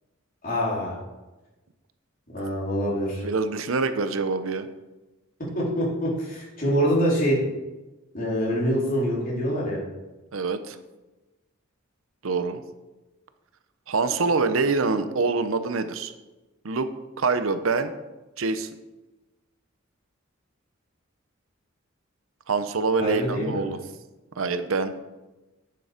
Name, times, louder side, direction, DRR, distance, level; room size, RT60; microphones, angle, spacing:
voice 1, 0.4-1.0 2.3-3.2 5.5-7.4 8.1-9.8 23.0-23.6, equal, 45° left, -6 dB, 3.8 m, -25 dB
voice 2, 3.2-4.7 10.3-10.8 12.2-12.6 13.9-16.1 16.6-16.9 17.2-17.9 18.4-18.7 22.5-23.8 24.4-24.9, right 4 dB, 80° right, 10 dB, 0.8 m, -25 dB
10.0 x 6.8 x 5.1 m, 1.1 s
head